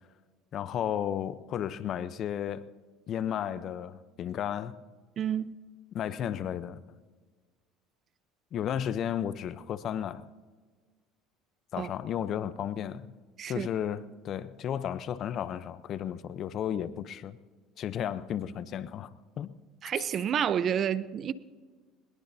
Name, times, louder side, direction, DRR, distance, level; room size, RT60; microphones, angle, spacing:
voice 1, 0.5-2.6 3.1-4.7 5.9-6.8 8.5-10.3 11.7-13.1 13.5-17.4 17.8-19.1 19.4-19.5, left 9 dB, 50° left, 0.7 m, -33 dB
voice 2, 5.2-5.5 11.8-11.9 13.4-13.7 19.8-21.3, right 9 dB, 45° right, 0.7 m, -29 dB
22.5 x 20.5 x 2.8 m
supercardioid pair, 90°, 0 cm